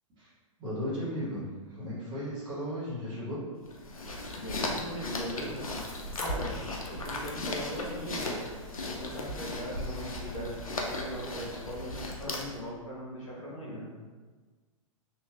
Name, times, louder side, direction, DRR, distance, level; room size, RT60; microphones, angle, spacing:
voice 1, 0.6-3.4, equal, 25° right, -9 dB, 1.3 m, -35 dB
sound 1, 3.6-12.7, left 1 dB, 90° left, 0.5 m, -36 dB
voice 2, 4.3-5.7 6.2-6.6 6.9-8.3 8.7-13.9, equal, 70° left, -5 dB, 1.1 m, -39 dB
3.0 x 2.6 x 2.4 m, 1.4 s
figure-of-eight pair, 110°, 18 cm